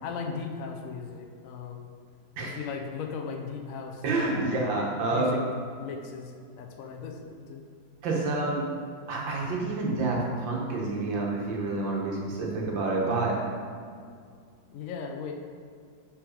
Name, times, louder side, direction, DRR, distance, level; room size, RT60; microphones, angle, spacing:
voice 1, 0.0-1.9 2.4-5.4 5.8-7.6 14.7-15.3, left 5 dB, 70° left, 2 dB, 0.8 m, -38 dB
voice 2, 4.0-5.4 8.0-8.6 9.1-13.3, right 3 dB, 80° right, -2 dB, 1.9 m, -28 dB
6.0 x 4.9 x 5.0 m, 2.1 s
omnidirectional pair, 2.0 m